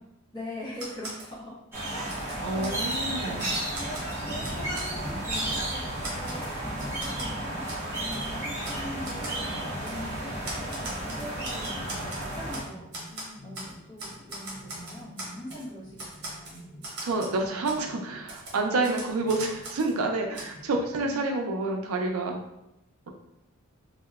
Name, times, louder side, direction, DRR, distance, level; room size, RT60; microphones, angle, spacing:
voice 1, 0.3-1.6 1.9-2.2 2.5-2.8 3.2-4.0 4.3-7.7 8.0-12.9 13.4-16.6 18.7-19.0 20.9-21.3, left 1 dB, 20° left, -8 dB, 0.8 m, -42 dB
Typewriter, 0.7-1.3 1.7-3.0 3.4-4.9 5.3-5.7 6.0-7.3 7.7-7.8 8.1-8.3 8.6-8.8 9.0-9.4 9.9-10.0 10.4-12.7 12.9-13.7 14.0-15.6 16.0-17.4 17.6-17.8 18.3-19.9 20.3-20.4, right 2 dB, 50° right, 0.8 m, -40 dB
sound 1, 1.7-12.6, right 1 dB, 10° right, 0.6 m, -33 dB
voice 2, 2.4-3.5 17.0-22.4, right 2 dB, 85° right, 3 dB, 0.4 m, -28 dB
sound 2, 3.6-18.3 19.0-20.9, left 1 dB, 60° left, 0.8 m, -48 dB
2.9 x 2.0 x 2.3 m, 0.85 s
head